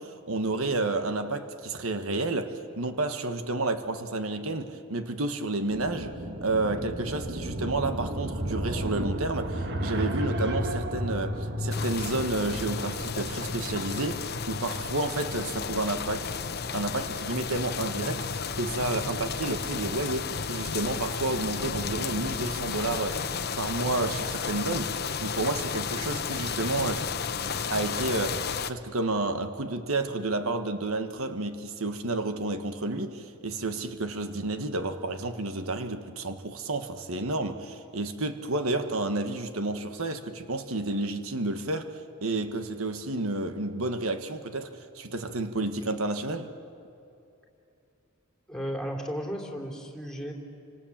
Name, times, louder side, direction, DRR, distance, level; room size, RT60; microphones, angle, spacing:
voice 1, 0.0-16.3 16.7-23.2 23.6-27.1 27.7-46.5, right 2 dB, 80° right, 1.4 m, -31 dB
sound 1, 5.7-14.5, equal, 55° right, 1.8 m, -33 dB
sound 2, 11.7-28.7, left 6 dB, 50° left, 0.9 m, -33 dB
voice 2, 48.5-50.3, equal, 5° left, 3.3 m, -34 dB
29.5 x 26.0 x 7.4 m
head